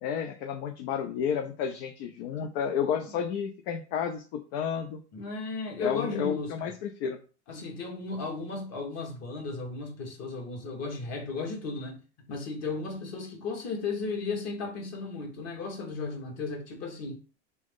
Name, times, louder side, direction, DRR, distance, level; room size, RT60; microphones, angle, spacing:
voice 1, 0.0-5.0 5.8-7.2, left 8 dB, 60° left, 0.6 m, -31 dB
voice 2, 5.1-6.7 7.5-17.2, left 3 dB, 45° left, 1.5 m, -35 dB
3.0 x 2.6 x 3.6 m
hypercardioid pair, 95°, 35 cm